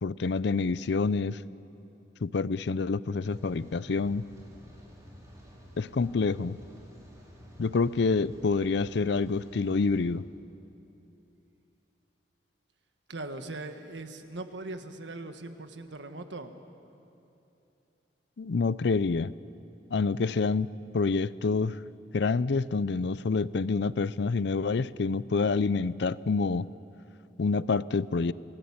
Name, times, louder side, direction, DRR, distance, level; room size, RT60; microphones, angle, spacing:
voice 1, 0.0-1.4 2.2-4.3 5.8-6.6 7.6-10.2 18.4-19.3 19.9-21.8 22.1-26.7 27.4-28.3, left 4 dB, 70° left, 18 dB, 0.5 m, -27 dB
Rain, 3.2-10.0, equal, 20° right, 5.4 m, -51 dB
voice 2, 13.1-16.5, right 2 dB, 80° right, 7 dB, 1.6 m, -40 dB
28.0 x 17.0 x 8.7 m, 2.8 s
head